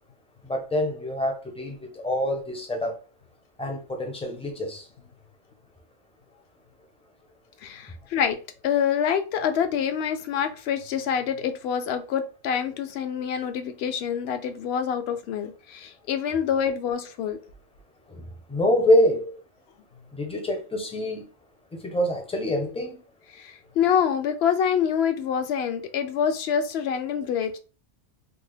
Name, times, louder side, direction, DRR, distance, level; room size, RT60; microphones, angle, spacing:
voice 1, 0.5-3.0 3.6-4.8 18.1-18.2 18.5-19.3 20.1-21.3 21.7-23.0, left 1 dB, 10° left, 0.4 m, -25 dB
voice 2, 7.6-8.4 8.6-17.4 23.4-27.6, left 8 dB, 65° left, 0.7 m, -26 dB
3.4 x 2.0 x 3.4 m
omnidirectional pair, 1.3 m